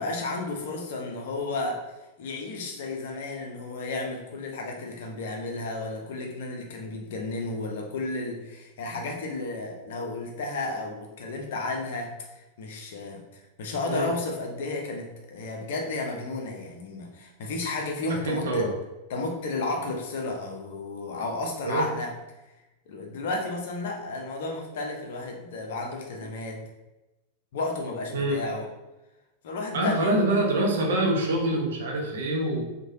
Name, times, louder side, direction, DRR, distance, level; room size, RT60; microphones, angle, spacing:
voice 1, 0.0-1.8 2.2-18.7 19.1-22.1 22.9-26.6 27.5-28.7 29.4-30.1, left 2 dB, 55° left, 1 dB, 0.5 m, -32 dB
voice 2, 18.3-18.7 21.6-21.8 28.1-28.4 29.7-32.6, right 1 dB, 60° right, 1 dB, 0.5 m, -25 dB
3.0 x 2.2 x 2.6 m, 1.0 s
figure-of-eight pair, 90°, 0 cm